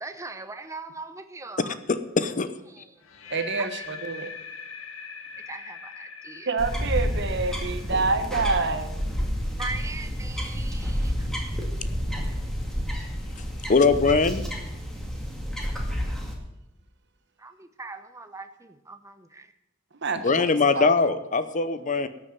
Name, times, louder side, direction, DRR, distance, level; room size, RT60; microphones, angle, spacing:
voice 1, 0.0-1.8 2.7-3.0 3.6-3.9 5.5-6.5 9.5-11.3 17.4-19.5, right 3 dB, 15° right, 0.8 m, -40 dB
voice 2, 1.9-2.5 13.7-14.4 20.2-22.1, left 4 dB, 40° left, 0.7 m, -21 dB
sound 1, 3.0-9.0, left 5 dB, 85° left, 1.4 m, -42 dB
voice 3, 3.3-4.3 6.5-8.9 19.9-20.9, right 3 dB, 60° right, 1.3 m, -27 dB
sound 2, 6.6-16.3, equal, ahead, 2.2 m, -30 dB
13.0 x 6.6 x 9.2 m
head